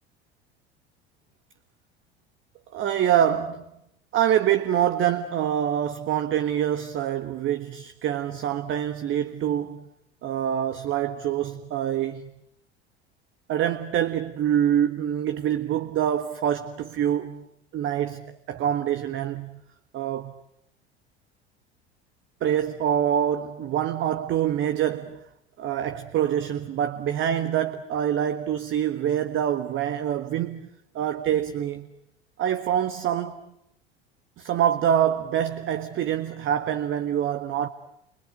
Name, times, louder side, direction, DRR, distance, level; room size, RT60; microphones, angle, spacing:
voice 1, 2.7-3.7 4.1-9.9 10.2-12.3 13.5-17.5 17.7-19.6 19.9-20.4 22.4-25.3 25.6-30.7 30.9-31.9 32.4-33.4 34.4-37.7, right 10 dB, 40° right, 1.4 m, -25 dB
29.5 x 25.0 x 8.0 m
figure-of-eight pair, 70°, 31 cm